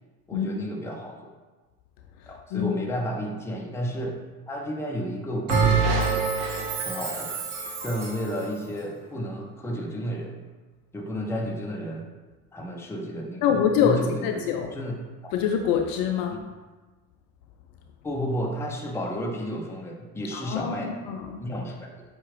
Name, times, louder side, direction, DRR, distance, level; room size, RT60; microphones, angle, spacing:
voice 1, 0.3-1.3 2.3-4.1 4.5-6.3 6.8-7.3 7.8-10.3 10.9-12.1 12.5-14.9 15.2-15.3 16.3-16.4 18.0-20.9 21.4-21.9, equal, 5° left, -1 dB, 0.6 m, -32 dB
voice 2, 2.2-2.7 13.4-14.7 15.3-16.4 20.3-21.4, left 8 dB, 50° left, 4 dB, 0.5 m, -25 dB
Bell, 5.5-8.3, right 5 dB, 60° right, 1.1 m, -25 dB
5.5 x 2.4 x 3.2 m, 1.3 s
hypercardioid pair, 70°, 46 cm